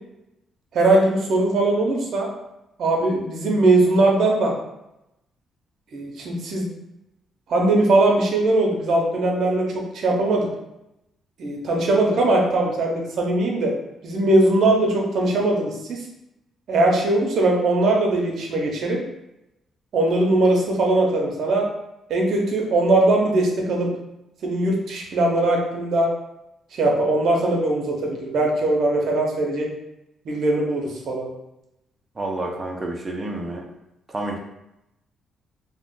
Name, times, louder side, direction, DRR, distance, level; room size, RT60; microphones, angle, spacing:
voice 1, 0.7-2.3 2.8-4.5 5.9-6.7 7.5-9.7 9.9-10.5 11.4-13.7 14.0-16.0 16.7-19.0 19.9-21.7 22.1-23.9 24.4-26.1 26.7-29.7 30.2-31.3, right 2 dB, 65° right, 0 dB, 0.7 m, -20 dB
voice 2, 32.1-33.6 34.1-34.4, right 2 dB, 25° right, 1 dB, 0.6 m, -29 dB
2.4 x 2.2 x 3.6 m, 0.88 s
cardioid pair, 90°, 0 cm